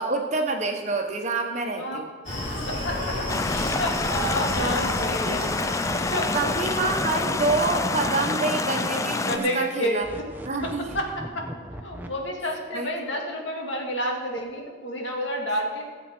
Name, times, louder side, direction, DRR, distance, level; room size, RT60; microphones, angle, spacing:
voice 1, 0.0-2.1 4.2-4.3 5.2-5.4 6.3-10.1 10.4-10.9 12.7-13.2, right 3 dB, 35° right, 3 dB, 1.2 m, -27 dB
Screaming, 2.2-7.8, left 1 dB, 35° left, 3.4 m, -32 dB
voice 2, 2.7-3.2 3.6-5.5 5.9-6.5 9.3-10.0 10.6-11.1 11.3-11.5 11.8-15.9, equal, 80° left, 1 dB, 2.0 m, -29 dB
sound 1, 3.3-9.4, left 3 dB, 15° left, 0.3 m, -27 dB
sound 2, 6.0-12.1, right 1 dB, 10° right, 0.8 m, -38 dB
17.0 x 7.3 x 4.5 m, 1.5 s
head